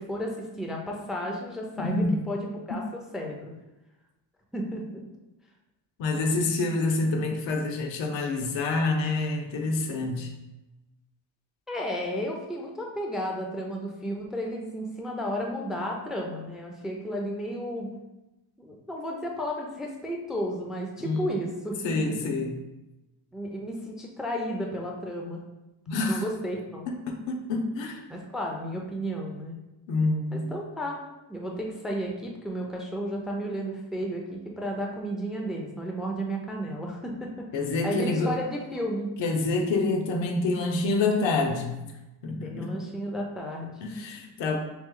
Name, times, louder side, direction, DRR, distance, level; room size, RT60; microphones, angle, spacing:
voice 1, 0.0-3.5 4.5-5.0 11.7-17.9 18.6-22.3 23.3-25.4 26.1-26.9 28.1-29.5 30.3-31.0 31.3-37.5 37.8-39.1 42.4-43.8, equal, ahead, 0 dB, 0.4 m, -33 dB
voice 2, 1.8-2.2 6.0-10.3 21.0-21.2 21.8-22.5 25.9-26.2 26.9-28.1 29.9-30.4 36.7-36.8 37.5-38.3 39.2-41.8 42.2-42.8 43.8-44.6, left 3 dB, 85° left, 3 dB, 0.7 m, -27 dB
3.2 x 3.2 x 3.6 m, 0.99 s
cardioid pair, 135°, 44 cm